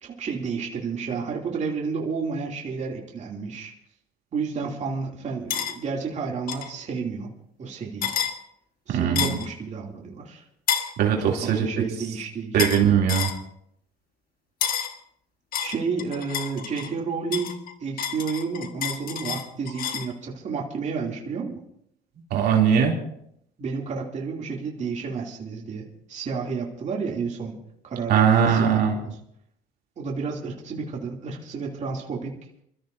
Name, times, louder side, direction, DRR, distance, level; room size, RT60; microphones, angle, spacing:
voice 1, 0.0-3.7 4.3-7.3 7.6-8.1 8.9-10.4 11.2-12.7 15.6-17.5 17.8-21.6 23.6-27.6 27.8-29.2 30.0-32.4, right 5 dB, 45° right, -1 dB, 2.8 m, -31 dB
sound 1, 5.5-5.7 6.5-6.7 8.0-8.3 9.2-9.5 10.7-10.9 12.6-12.8 13.1-13.4 14.6-14.9 15.5-16.9 17.3-20.1, left 8 dB, 60° left, 1.6 m, -29 dB
voice 2, 8.9-9.3 11.0-11.6 12.5-13.3 22.3-22.9 28.1-28.9, right 8 dB, 70° right, 0 dB, 2.9 m, -20 dB
27.5 x 14.0 x 2.7 m, 0.73 s
cardioid pair, 110°, 17 cm